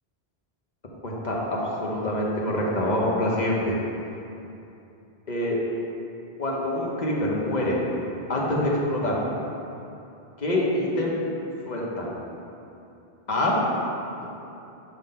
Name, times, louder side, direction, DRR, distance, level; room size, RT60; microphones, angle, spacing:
voice 1, 1.0-3.7 5.3-5.6 6.4-7.8 8.3-9.2 10.4-11.2 11.6-12.1 13.3-13.6, left 1 dB, 45° left, -4 dB, 1.1 m, -25 dB
5.7 x 3.8 x 5.4 m, 2.8 s
omnidirectional pair, 1.0 m